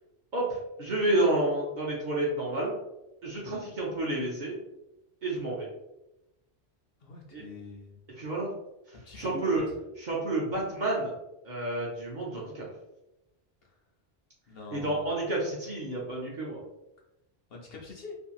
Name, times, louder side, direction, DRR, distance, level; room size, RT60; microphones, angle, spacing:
voice 1, 0.3-2.8 3.2-4.6 5.2-5.7 7.3-7.4 8.1-8.5 8.9-9.7 10.0-11.2 11.4-12.7 14.7-16.6, right 2 dB, 50° right, -4 dB, 0.6 m, -30 dB
voice 2, 7.0-8.0 8.9-9.5 13.6-13.8 14.5-15.1 17.5-18.1, left 3 dB, 60° left, -1 dB, 0.8 m, -44 dB
2.8 x 2.6 x 2.3 m, 0.91 s
omnidirectional pair, 1.2 m